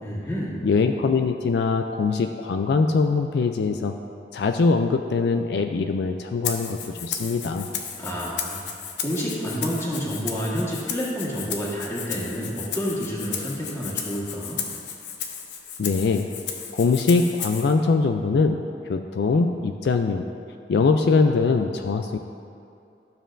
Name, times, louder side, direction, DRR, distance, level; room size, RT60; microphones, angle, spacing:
voice 1, 0.0-0.6 8.0-8.6 9.0-14.6, equal, 15° left, -6 dB, 1.5 m, -29 dB
voice 2, 0.6-3.9 4.3-7.7 15.8-16.3 16.7-20.3 20.7-22.2, left 4 dB, 70° left, 6 dB, 0.3 m, -22 dB
Rattle (instrument), 6.4-17.7, left 7 dB, 90° left, 0.7 m, -34 dB
12.5 x 7.1 x 2.5 m, 2.6 s
head